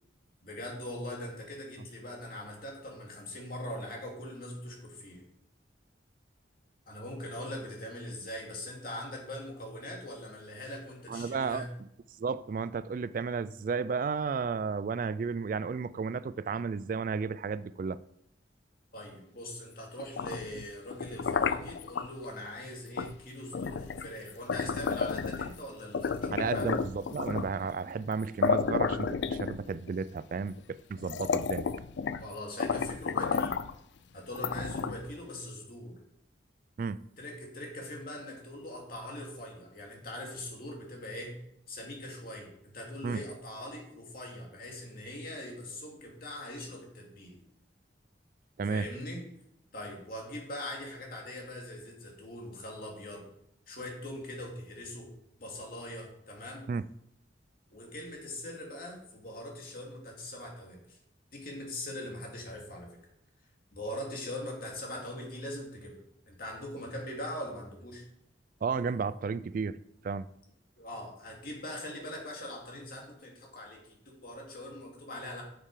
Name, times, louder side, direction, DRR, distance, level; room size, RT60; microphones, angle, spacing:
voice 1, 0.4-5.2 6.9-11.7 18.9-26.7 32.2-33.6 34.1-36.0 37.2-41.3 41.7-47.4 48.7-49.2 49.7-53.3 53.7-55.1 55.4-56.7 57.7-61.0 61.3-62.9 63.7-66.0 66.3-68.0 70.8-75.4, left 1 dB, 50° left, 2.6 m, -41 dB
voice 2, 11.1-11.7 12.2-18.0 26.3-31.7 36.8-37.0 43.0-43.2 48.6-48.9 56.7-56.9 68.6-69.8 70.0-70.3, right 5 dB, 50° right, 0.3 m, -33 dB
sound 1, 20.0-22.1 23.0-23.2 23.5-25.6 25.9-27.6 28.1-28.2 28.4-29.9 30.6-30.7 31.0-32.3 32.6-33.7 34.3-35.1, left 5 dB, 75° left, 0.4 m, -32 dB
8.9 x 6.6 x 4.9 m
head